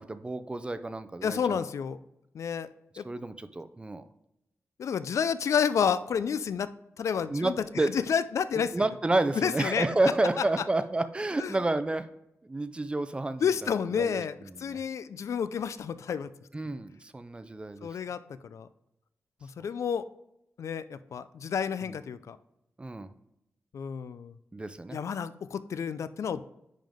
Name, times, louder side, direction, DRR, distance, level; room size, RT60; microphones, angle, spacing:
voice 1, 0.0-1.6 3.0-4.0 7.3-7.9 8.7-12.1 12.4-13.7 14.0-14.8 16.5-17.9 19.6-19.7 21.8-22.0 22.8-23.1 24.5-25.0, right 2 dB, 20° right, 11 dB, 0.4 m, -30 dB
voice 2, 1.2-2.0 2.3-2.7 3.0-3.1 4.8-6.7 7.0-7.5 7.9-8.8 9.4-9.9 10.4-10.5 11.4-11.6 13.4-16.3 17.8-18.7 19.4-20.0 20.6-22.4 23.7-24.3 24.9-26.4, left 7 dB, 80° left, 14 dB, 0.4 m, -30 dB
10.0 x 3.8 x 3.5 m, 0.82 s
wide cardioid pair, 120°, 5 cm